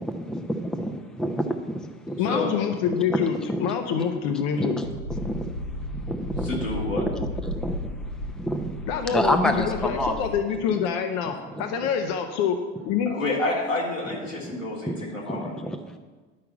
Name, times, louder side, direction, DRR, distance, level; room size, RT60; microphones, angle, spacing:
voice 1, 0.0-2.5 2.9-3.2 3.5-4.0 4.3-5.5 5.9-10.2 11.3-11.9 14.2-16.0, equal, ahead, 6 dB, 0.7 m, -30 dB
voice 2, 2.2-4.8 8.9-12.6 12.8-13.1, left 7 dB, 45° left, 5 dB, 1.0 m, -26 dB
sound 1, 4.8-10.4, left 1 dB, 70° left, 1.9 m, -34 dB
voice 3, 6.4-7.0 13.1-15.5, left 2 dB, 85° left, -5 dB, 3.4 m, -28 dB
10.5 x 5.8 x 8.3 m, 1.3 s
figure-of-eight pair, 80°, 38 cm